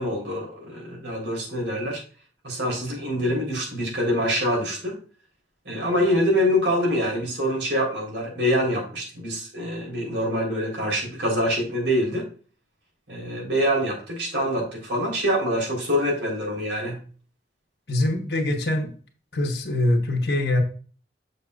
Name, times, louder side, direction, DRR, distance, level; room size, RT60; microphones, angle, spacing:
voice 1, 0.0-2.0 2.4-4.9 5.7-12.3 13.1-17.0, equal, 90° right, 0 dB, 3.7 m, -25 dB
voice 2, 17.9-18.9 19.3-20.6, left 1 dB, 65° left, 4 dB, 1.2 m, -23 dB
7.2 x 6.7 x 2.4 m, 0.40 s
head